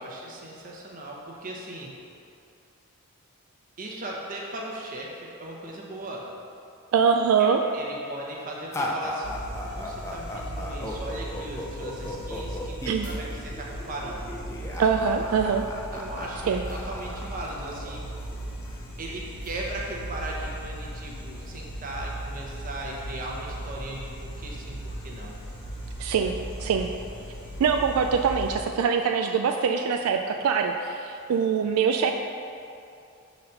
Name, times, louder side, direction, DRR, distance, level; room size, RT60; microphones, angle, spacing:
voice 1, 0.0-1.9 3.8-6.3 7.4-7.5 7.7-14.3 15.9-18.1 19.0-25.3, right 1 dB, 40° right, -2 dB, 0.9 m, -38 dB
voice 2, 6.9-7.6 12.9-13.1 14.8-15.6 16.5-16.6 26.0-26.3 26.6-26.9 27.6-32.1, right 6 dB, 80° right, 4 dB, 0.3 m, -23 dB
sound 1, 8.7-18.7, left 1 dB, 15° left, 0.5 m, -36 dB
sound 2, 9.2-28.6, right 1 dB, 90° left, 1.4 m, -37 dB
5.8 x 4.1 x 5.3 m, 2.6 s
head